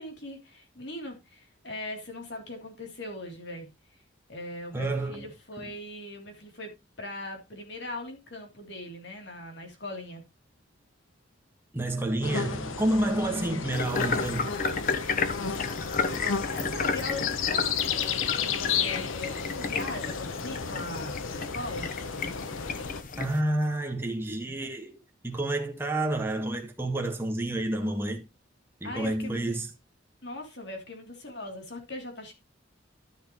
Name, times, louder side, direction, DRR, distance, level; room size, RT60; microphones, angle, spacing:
voice 1, 0.0-4.0 4.3-6.7 7.0-10.2 15.9-21.9 28.8-29.4 30.2-32.3, left 2 dB, 60° left, 3.2 m, -40 dB
voice 2, 4.7-5.3 5.6-5.7 11.7-14.5 23.2-25.0 25.2-28.3 28.8-29.7, right 1 dB, 10° right, 1.6 m, -29 dB
sound 1, 12.2-23.0, left 6 dB, 90° left, 1.0 m, -33 dB
sound 2, 13.7-23.4, left 5 dB, 40° left, 0.9 m, -33 dB
13.0 x 6.5 x 3.1 m
head